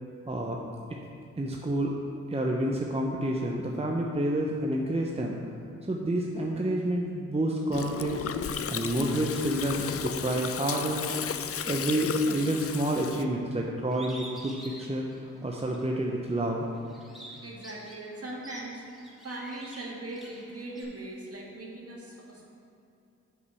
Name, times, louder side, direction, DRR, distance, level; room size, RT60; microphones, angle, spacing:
voice 1, 0.3-0.6 0.9-1.0 1.4-2.0 2.3-5.4 5.8-8.2 8.7-11.0 11.6-15.1 15.4-16.7, right 1 dB, 20° right, -1 dB, 0.8 m, -29 dB
Gurgling, 7.7-13.2, left 8 dB, 50° left, 0.4 m, -34 dB
Bird, 13.9-15.9 16.3-20.8, right 1 dB, ahead, 1.9 m, -47 dB
voice 2, 17.4-18.8 19.2-22.4, right 2 dB, 50° right, -3 dB, 1.9 m, -40 dB
6.5 x 5.3 x 6.3 m, 2.6 s
cardioid pair, 50°, 31 cm